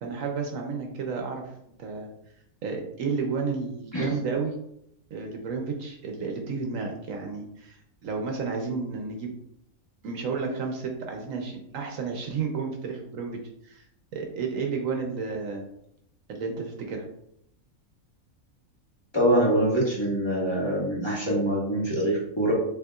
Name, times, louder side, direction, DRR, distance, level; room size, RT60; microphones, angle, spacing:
voice 1, 0.0-1.5 1.8-2.1 2.6-4.5 5.1-9.3 10.0-13.8 14.1-15.6 16.3-17.0, right 5 dB, 70° right, 2 dB, 1.0 m, -32 dB
voice 2, 19.1-22.5, right 1 dB, 20° left, -6 dB, 1.2 m, -24 dB
6.4 x 2.9 x 2.4 m, 0.75 s
omnidirectional pair, 1.5 m